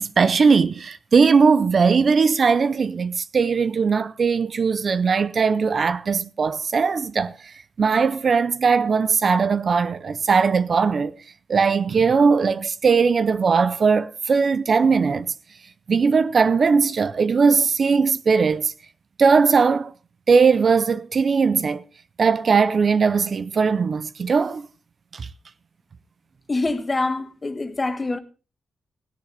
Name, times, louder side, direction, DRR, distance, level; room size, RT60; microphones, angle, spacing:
voice 1, 0.0-11.2 11.5-15.3 15.9-18.7 19.2-19.9 20.3-21.8 22.2-24.7 25.1-25.3, right 5 dB, 50° right, 0.6 m, -19 dB
voice 2, 26.5-28.2, left 2 dB, 25° left, 1.4 m, -25 dB
17.0 x 10.0 x 4.0 m
cardioid pair, 95°, 0 cm